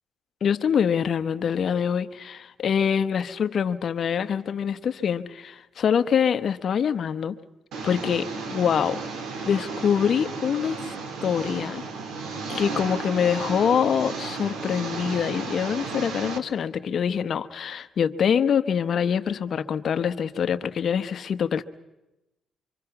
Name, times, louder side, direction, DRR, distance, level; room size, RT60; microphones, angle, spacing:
voice 1, 0.4-7.4 7.8-9.0 9.4-10.9 11.2-11.8 12.5-21.6, left 7 dB, 55° left, 1.0 m, -25 dB
Engine, 7.7-16.4, right 4 dB, 75° right, 2.2 m, -34 dB
25.5 x 24.5 x 5.9 m
cardioid pair, 90°, 0 cm